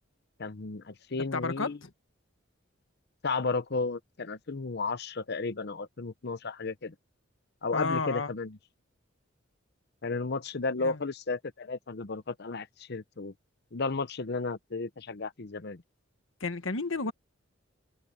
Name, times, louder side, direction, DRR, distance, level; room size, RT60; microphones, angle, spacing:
voice 1, 0.4-1.8 3.2-6.9 7.6-8.6 10.0-13.3 13.7-15.8, left 3 dB, 55° left, 0.8 m, -33 dB
voice 2, 1.3-1.9 7.7-8.3 10.8-11.0 16.4-17.1, left 3 dB, 85° left, 1.5 m, -32 dB
head